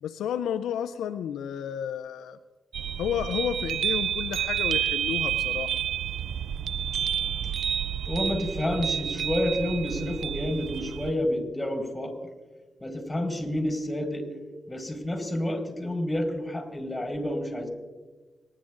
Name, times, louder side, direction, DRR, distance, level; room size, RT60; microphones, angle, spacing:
voice 1, 0.0-2.4 3.0-5.8, left 9 dB, 85° left, 11 dB, 0.4 m, -31 dB
sound 1, 2.7-11.1, right 9 dB, 75° right, 0.4 m, -30 dB
voice 2, 8.1-12.1 12.8-14.3 14.7-17.7, left 1 dB, 15° left, 4 dB, 4.7 m, -29 dB
26.0 x 10.5 x 2.5 m, 1.3 s
supercardioid pair, 45°, 0 cm